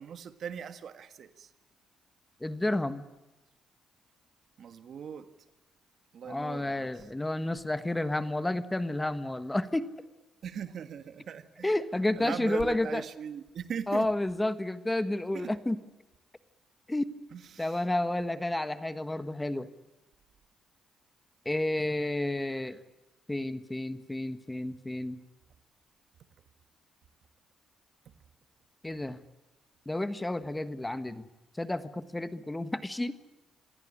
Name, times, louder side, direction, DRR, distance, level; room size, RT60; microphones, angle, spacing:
voice 1, 0.0-1.5 4.6-5.3 6.1-7.1 10.4-11.8 12.1-14.1 15.3-15.6 17.3-17.8 28.0-28.1, right 7 dB, 60° right, 1.5 m, -40 dB
voice 2, 2.4-3.0 6.3-9.9 11.6-13.0 13.9-15.8 16.9-17.0 17.6-19.7 21.4-22.8 23.3-25.2 28.8-29.2 29.8-31.3 31.6-33.1, left 1 dB, 10° left, 1.4 m, -31 dB
26.5 x 17.0 x 9.9 m
cardioid pair, 90°, 0 cm